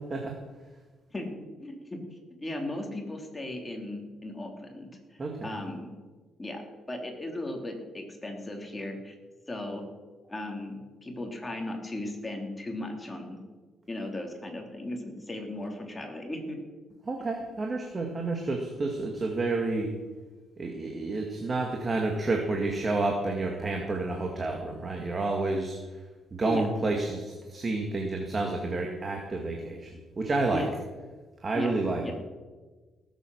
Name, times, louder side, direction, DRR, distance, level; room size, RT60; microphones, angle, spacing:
voice 1, 1.6-2.0 2.4-5.9 6.4-6.6 6.9-9.1 9.5-9.8 10.3-13.4 13.9-16.6 17.2-17.3 26.4-26.7 30.5-30.7 31.5-31.7 32.0-32.1, left 1 dB, 20° left, 2 dB, 3.1 m, -36 dB
voice 2, 5.2-5.5 17.1-19.9 20.6-25.8 26.3-30.6 31.4-32.1, right 2 dB, 30° right, 2 dB, 2.1 m, -30 dB
18.5 x 8.2 x 6.3 m, 1.3 s
cardioid pair, 90°, 0 cm